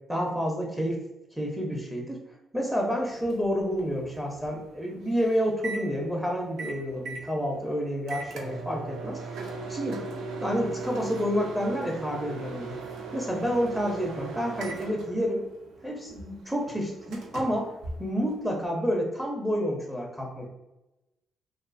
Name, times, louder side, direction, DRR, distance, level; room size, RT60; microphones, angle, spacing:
voice 1, 0.1-1.0 1.3-2.2 2.5-9.4 9.7-10.0 10.4-12.8 13.1-15.4 15.8-17.7 18.0-20.5, equal, 5° right, 0 dB, 0.5 m, -29 dB
Microwave oven, 3.0-18.7, right 4 dB, 80° right, 0.4 m, -39 dB
2.4 x 2.3 x 2.4 m, 0.99 s
cardioid pair, 90°, 0 cm